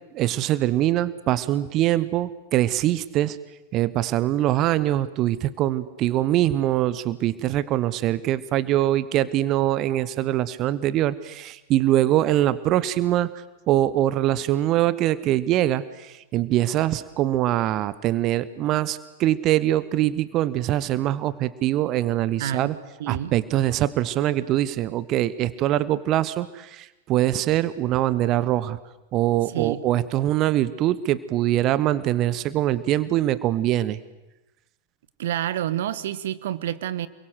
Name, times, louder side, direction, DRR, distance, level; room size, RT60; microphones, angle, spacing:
voice 1, 0.1-3.4 3.7-13.3 13.7-22.8 23.1-28.8 29.1-34.0, right 13 dB, 35° right, 17 dB, 1.0 m, -23 dB
voice 2, 22.4-22.7 23.0-23.3 29.5-29.8 35.2-37.1, right 11 dB, 55° right, 17 dB, 1.3 m, -28 dB
28.5 x 22.5 x 8.0 m, 1.0 s
figure-of-eight pair, 90°, 0 cm